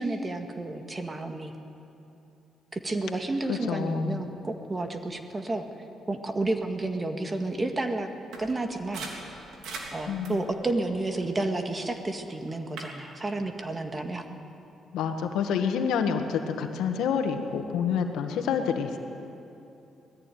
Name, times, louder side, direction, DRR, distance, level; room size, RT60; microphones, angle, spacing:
voice 1, 0.0-1.5 2.7-5.7 6.1-8.1 8.4-9.1 9.9-14.3, right 2 dB, 25° right, 5 dB, 1.8 m, -31 dB
voice 2, 3.5-4.3 10.1-10.5 14.9-19.0, left 7 dB, 85° left, 6 dB, 1.6 m, -28 dB
sound 1, 8.3-12.0 12.4-12.9, right 3 dB, 80° right, 3.1 m, -43 dB
20.0 x 14.5 x 9.2 m, 2.9 s
cardioid pair, 90°, 0 cm